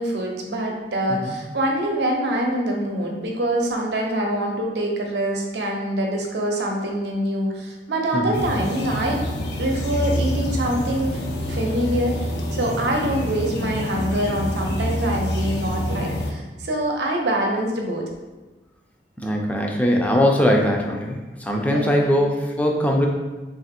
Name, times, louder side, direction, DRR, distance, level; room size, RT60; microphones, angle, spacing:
voice 1, 0.0-9.2 9.6-11.2 11.5-12.1 12.5-18.0 21.7-22.1, right 1 dB, 70° right, 0 dB, 0.7 m, -25 dB
voice 2, 8.1-8.4 19.2-23.1, equal, 10° left, 0 dB, 0.4 m, -21 dB
sound 1, 8.3-16.3, left 1 dB, 70° left, 0.5 m, -27 dB
3.3 x 2.5 x 4.2 m, 1.2 s
head